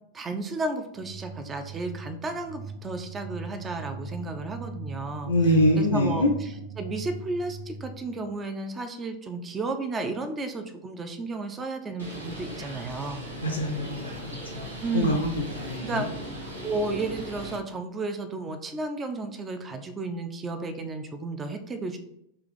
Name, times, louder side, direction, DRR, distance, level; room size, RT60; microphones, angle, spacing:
voice 1, 0.1-5.3 5.8-6.2 6.8-13.2 14.8-15.3 15.8-16.1 16.4-22.0, right 3 dB, 20° right, 8 dB, 0.4 m, -33 dB
sound 1, 0.9-8.3, right 3 dB, 60° right, 1.1 m, -40 dB
voice 2, 5.3-6.3 13.4-16.1, left 1 dB, 70° left, 3 dB, 0.5 m, -25 dB
Bird, 12.0-17.6, right 1 dB, 85° right, 1.2 m, -38 dB
3.3 x 3.0 x 3.7 m, 0.77 s
figure-of-eight pair, 90°, 0 cm